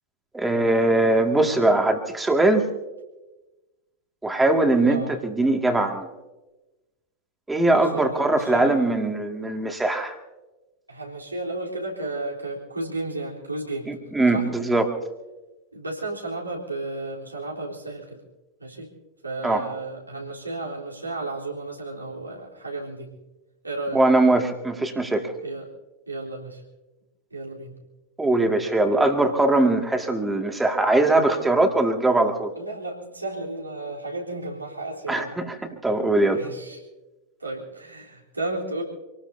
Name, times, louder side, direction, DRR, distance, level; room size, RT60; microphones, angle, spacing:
voice 1, 0.3-2.6 4.2-6.1 7.5-10.1 13.9-14.9 19.4-19.7 23.9-25.3 28.2-32.5 35.1-35.6 35.8-36.4, right 2 dB, 10° right, 4 dB, 2.2 m, -21 dB
voice 2, 7.6-8.9 10.9-13.9 14.3-14.5 15.7-18.2 18.6-18.9 19.2-23.1 23.6-24.0 25.4-25.7 26.1-26.6 27.3-27.7 32.6-35.4 36.3-36.8 37.4-38.8, right 2 dB, 80° right, -2 dB, 3.6 m, -33 dB
27.0 x 19.0 x 2.8 m, 1.1 s
figure-of-eight pair, 90°, 0 cm